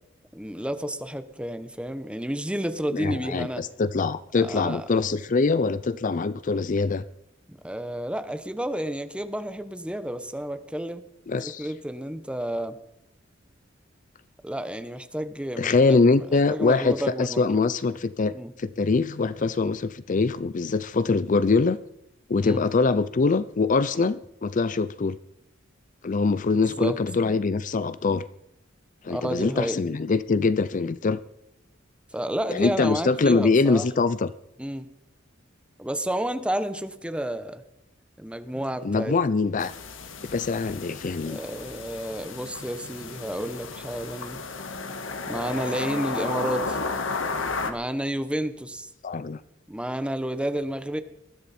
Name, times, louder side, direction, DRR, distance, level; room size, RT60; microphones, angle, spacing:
voice 1, 0.3-3.6 4.4-4.9 7.5-11.0 11.4-12.8 14.4-17.7 18.3-18.5 22.4-22.7 26.5-27.0 29.1-29.8 32.1-33.9 34.6-34.9 35.8-37.6 38.2-39.1 41.3-44.4 45.3-46.8 47.6-48.9 49.7-51.0, right 1 dB, 5° right, 10 dB, 1.0 m, -31 dB
voice 2, 2.9-7.0 11.3-11.7 15.6-21.8 22.3-25.2 26.0-28.2 29.0-31.2 32.5-34.3 38.8-39.7 40.3-41.4 49.0-49.4, left 4 dB, 40° left, 16 dB, 0.5 m, -23 dB
sound 1, 39.6-47.7, left 4 dB, 90° left, 1.6 m, -33 dB
20.5 x 13.5 x 4.3 m, 0.82 s
head